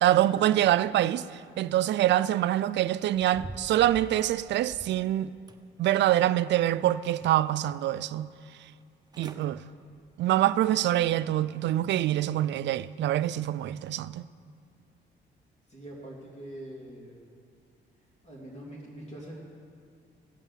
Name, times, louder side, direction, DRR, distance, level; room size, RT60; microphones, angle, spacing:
voice 1, 0.0-5.3 5.8-8.3 9.2-9.6 10.2-14.3, right 13 dB, 65° right, 0.4 m, -25 dB
sound 1, 3.0-5.0 5.5-6.3 6.7-7.6 8.0-8.1 8.8-8.9 9.1-9.5 9.9-10.2 10.7-10.8, right 3 dB, 20° right, 0.8 m, -47 dB
voice 2, 15.7-17.2 18.2-19.4, right 1 dB, 30° left, 3.0 m, -43 dB
16.0 x 5.5 x 7.3 m
cardioid pair, 90°, 20 cm